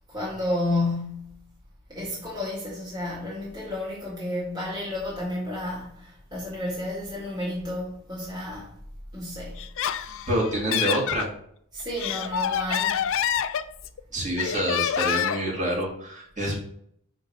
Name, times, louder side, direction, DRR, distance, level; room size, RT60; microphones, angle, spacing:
voice 1, 0.1-1.4 1.9-8.7 9.1-9.6 11.7-13.0, left 1 dB, 20° right, 1.9 m, -31 dB
Laughter, 9.6-11.3 11.8-14.0 14.4-15.5, left 9 dB, 60° left, 0.4 m, -27 dB
voice 2, 10.3-11.3 14.1-16.5, right 1 dB, 35° right, 2.1 m, -27 dB
5.2 x 4.4 x 5.5 m
head